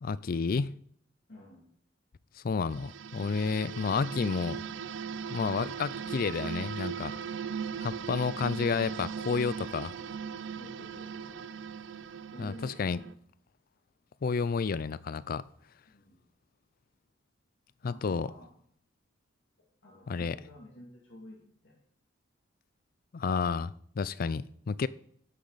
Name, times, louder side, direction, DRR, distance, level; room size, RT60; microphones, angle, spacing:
voice 1, 0.0-0.8 2.4-4.6 5.3-7.2 7.8-9.9 12.4-13.0 14.2-15.4 17.8-18.3 20.1-20.4 23.1-24.9, left 5 dB, 50° left, 0.4 m, -31 dB
voice 2, 1.3-1.7 10.6-11.5 12.3-13.1 15.9-16.2 17.8-18.5 19.8-21.8, left 1 dB, 70° left, 2.5 m, -50 dB
sound 1, 2.7-13.1, right 7 dB, 80° right, 0.5 m, -39 dB
13.0 x 10.0 x 4.0 m
head